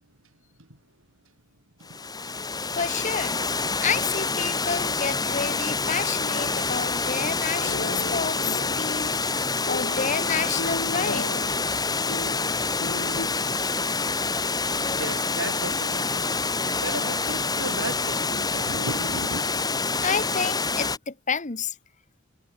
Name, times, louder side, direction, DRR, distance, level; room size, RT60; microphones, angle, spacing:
Water, 1.8-21.0, left 4 dB, 20° left, 3.7 m, -27 dB
voice 1, 2.7-3.4 3.8-9.4 9.7-11.3 20.0-21.7, left 5 dB, 35° left, 1.2 m, -30 dB
sound 1, 7.5-13.3, left 2 dB, 70° left, 3.5 m, -36 dB
voice 2, 15.0-19.5, right 2 dB, 75° right, 7.7 m, -35 dB
head